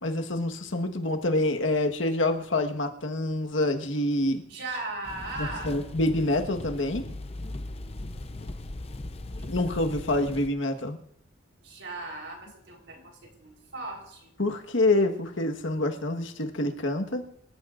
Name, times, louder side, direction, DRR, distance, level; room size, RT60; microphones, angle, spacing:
voice 1, 0.0-4.4 5.4-7.0 9.5-11.0 14.4-17.2, left 2 dB, 80° left, 4 dB, 1.5 m, -27 dB
voice 2, 4.5-5.7 9.4-10.0 11.6-14.3, right 2 dB, 75° right, 2 dB, 4.2 m, -38 dB
sound 1, 5.0-10.5, left 2 dB, 30° left, 0.7 m, -38 dB
26.0 x 14.0 x 2.6 m, 0.72 s
head